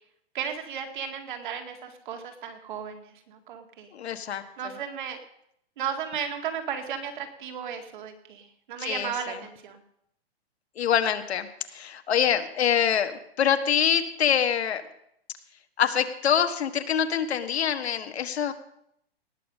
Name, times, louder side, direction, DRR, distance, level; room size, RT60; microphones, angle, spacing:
voice 1, 0.3-3.9 4.6-5.2 5.8-9.8, right 7 dB, 50° right, 6 dB, 2.1 m, -35 dB
voice 2, 3.9-4.8 8.8-9.4 10.8-14.8 15.8-18.5, left 8 dB, 75° left, 8 dB, 1.5 m, -25 dB
18.5 x 7.1 x 6.3 m, 0.73 s
hypercardioid pair, 165°, 32 cm